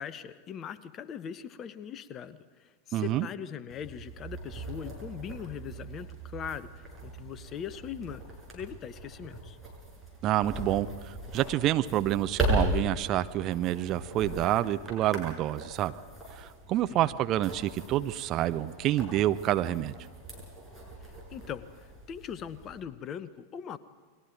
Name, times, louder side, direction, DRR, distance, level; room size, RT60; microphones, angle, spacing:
voice 1, 0.0-8.2 8.5-9.6 16.9-17.0 21.3-23.8, left 8 dB, 30° left, 15 dB, 0.9 m, -40 dB
voice 2, 2.9-3.3 10.2-15.9 16.4-19.9, right 13 dB, 35° right, 12 dB, 0.7 m, -28 dB
sound 1, 3.7-22.8, right 1 dB, 10° right, 7.3 m, -38 dB
30.0 x 22.0 x 4.6 m, 1.5 s
figure-of-eight pair, 90°, 0 cm